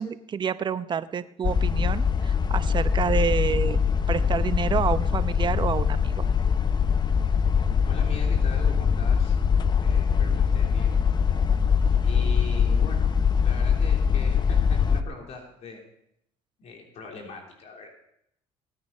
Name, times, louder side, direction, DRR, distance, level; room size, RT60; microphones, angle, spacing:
voice 1, 0.0-3.8 4.1-6.3, right 6 dB, 40° right, 13 dB, 0.8 m, -28 dB
sound 1, 1.4-15.0, left 6 dB, 35° left, 0.9 m, -22 dB
voice 2, 7.8-9.4 9.8-11.0 12.0-13.1 13.4-15.8 16.6-17.9, left 3 dB, 60° left, 1 dB, 3.3 m, -41 dB
17.0 x 9.5 x 5.5 m, 0.75 s
supercardioid pair, 80°, 12 cm